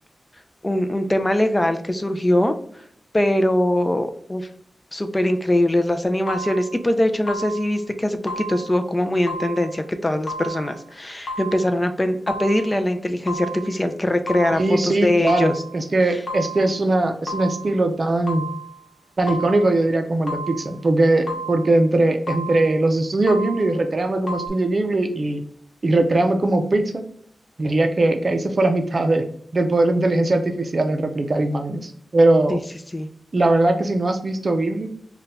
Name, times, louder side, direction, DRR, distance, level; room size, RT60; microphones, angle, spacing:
voice 1, 0.6-2.8 3.1-4.5 4.9-15.6 16.1-16.2 32.5-32.6 32.9-33.1, left 1 dB, 20° left, 7 dB, 0.4 m, -22 dB
sound 1, 6.3-6.8 7.3-7.8 8.3-8.8 9.3-9.8 10.3-10.8 11.3-11.8 12.3-12.8 13.3-13.8 14.3-14.8 15.3-15.8 16.3-16.8 17.3-17.8 18.3-18.8 19.3-19.8 20.3-20.8 21.3-21.8 22.3-22.8 23.3-23.8 24.3-24.5, right 1 dB, 60° left, 1.0 m, -33 dB
voice 2, 14.6-18.5 19.2-25.4 25.8-27.0 27.6-29.2 29.5-32.6 33.3-34.9, right 2 dB, 45° right, 6 dB, 0.5 m, -20 dB
2.6 x 2.2 x 3.9 m, 0.63 s
wide cardioid pair, 90°, 0 cm